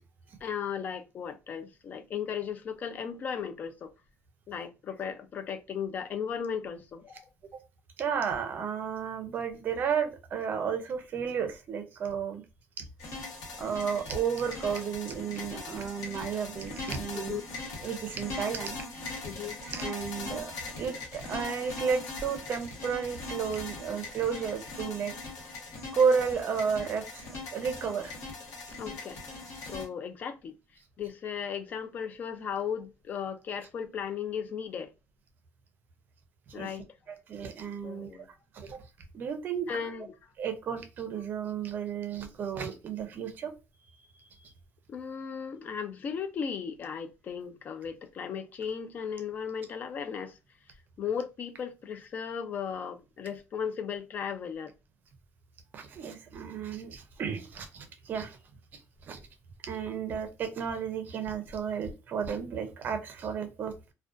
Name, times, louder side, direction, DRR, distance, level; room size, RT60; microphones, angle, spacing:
voice 1, 0.4-3.9 4.5-7.3 17.1-17.4 19.2-19.6 28.8-29.2 29.7-30.6 31.0-34.9 36.5-36.9 37.8-38.3 39.7-40.1 44.9-50.4 51.0-54.7, left 7 dB, 35° left, 0.3 m, -36 dB
voice 2, 8.0-12.4 13.6-17.4 17.8-18.8 19.6-25.1 25.9-28.1 36.5-36.7 37.1-38.1 38.5-38.8 39.1-39.7 40.4-43.5 55.7-58.4 58.7-59.2 59.6-63.9, right 6 dB, 40° right, 0.5 m, -32 dB
sound 1, 13.0-29.9, left 3 dB, 70° left, 1.0 m, -41 dB
2.4 x 2.2 x 2.4 m
cardioid pair, 160°, 5 cm